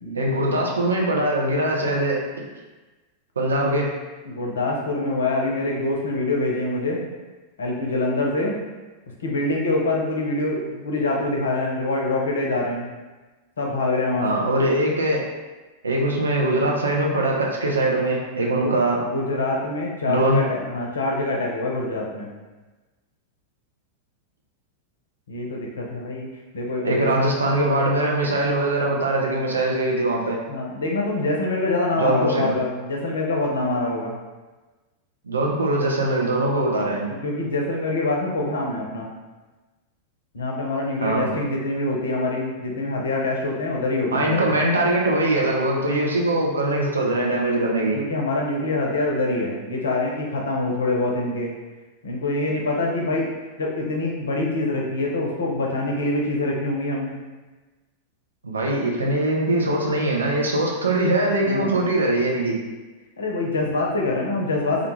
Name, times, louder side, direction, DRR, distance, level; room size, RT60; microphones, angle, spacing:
voice 1, 0.1-2.5 3.4-3.9 14.2-15.2 15.8-19.0 20.1-20.4 26.8-30.4 31.9-32.5 35.2-37.1 41.0-41.3 44.1-48.0 58.4-62.6, right 1 dB, 75° right, -2 dB, 0.5 m, -22 dB
voice 2, 4.3-7.0 7.6-8.6 9.2-12.9 13.6-14.4 18.6-18.7 19.1-22.3 25.3-26.3 26.5-27.2 30.5-34.2 37.1-39.1 40.3-44.5 47.9-51.5 52.0-53.3 53.6-57.2 61.4-61.7 63.2-64.9, left 2 dB, 70° left, -1 dB, 0.5 m, -25 dB
2.3 x 2.2 x 3.0 m, 1.2 s
figure-of-eight pair, 90°, 0 cm